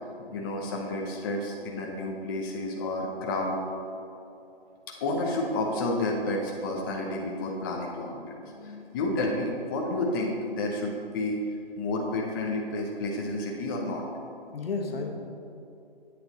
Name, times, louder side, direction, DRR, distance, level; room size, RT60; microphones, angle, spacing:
voice 1, 0.3-3.6 4.9-8.2 8.6-14.0, left 2 dB, 20° left, -1 dB, 0.6 m, -30 dB
voice 2, 8.4-8.9 14.5-15.1, left 4 dB, 70° left, 2 dB, 1.4 m, -35 dB
8.4 x 6.8 x 3.9 m, 2.8 s
hypercardioid pair, 150°, 30 cm